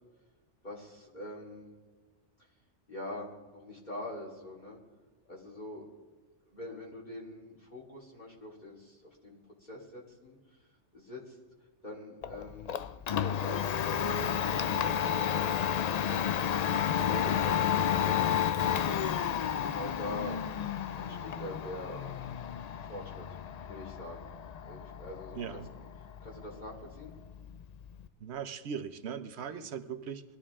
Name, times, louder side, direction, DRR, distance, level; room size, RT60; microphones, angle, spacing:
voice 1, 0.6-1.7 2.9-4.8 5.3-5.9 6.5-10.4 10.9-11.4 11.8-15.6 16.1-16.4 16.7-18.7 19.4-20.4 21.0-22.1 22.8-23.4 23.7-24.3 24.6-25.9 26.2-27.1 29.5-29.7, left 1 dB, 40° left, -4 dB, 2.6 m, -44 dB
Domestic sounds home sounds, 12.2-28.1, left 9 dB, 70° left, 0.3 m, -32 dB
voice 2, 25.3-25.7 28.2-30.2, right 7 dB, 65° right, 11 dB, 1.0 m, -39 dB
21.5 x 12.5 x 3.6 m, 1.4 s
omnidirectional pair, 1.2 m